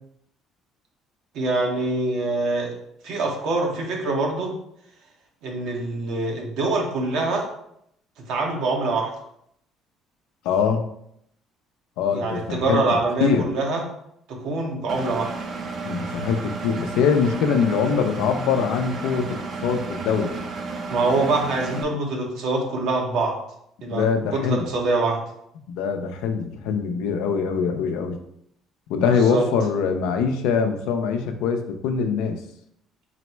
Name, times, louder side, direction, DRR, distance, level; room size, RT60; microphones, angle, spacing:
voice 1, 1.3-2.7 3.0-4.5 5.4-7.5 8.3-9.1 12.1-13.8 14.3-15.3 20.9-23.4 23.8-24.1 24.3-25.2 29.0-29.4, right 2 dB, 75° right, 0 dB, 1.0 m, -24 dB
voice 2, 10.4-10.9 12.0-12.8 13.2-13.5 15.8-20.4 23.9-24.7 25.7-28.2 28.9-32.4, left 6 dB, 80° left, 6 dB, 0.5 m, -23 dB
Engine, 14.9-21.8, right 4 dB, 50° right, 0.6 m, -32 dB
4.1 x 2.0 x 4.4 m, 0.74 s
supercardioid pair, 75°, 0 cm